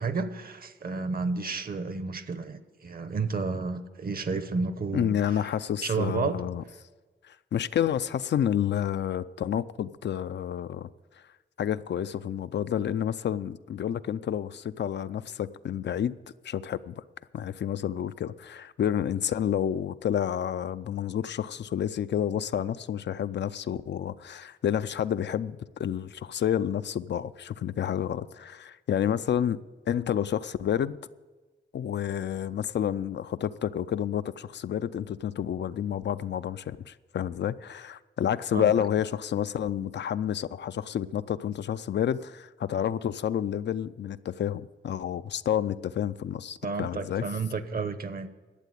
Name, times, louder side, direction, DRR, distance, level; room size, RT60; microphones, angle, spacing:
voice 1, 0.0-5.2 5.8-6.4 38.5-38.7 46.6-48.3, right 4 dB, 50° right, 12 dB, 0.9 m, -31 dB
voice 2, 4.9-6.6 7.3-10.9 11.6-16.1 16.4-16.9 17.3-29.6 29.9-31.0 31.7-47.2, left 9 dB, 65° left, 13 dB, 0.4 m, -29 dB
11.5 x 8.3 x 8.4 m, 1.3 s
wide cardioid pair, 105°, 20 cm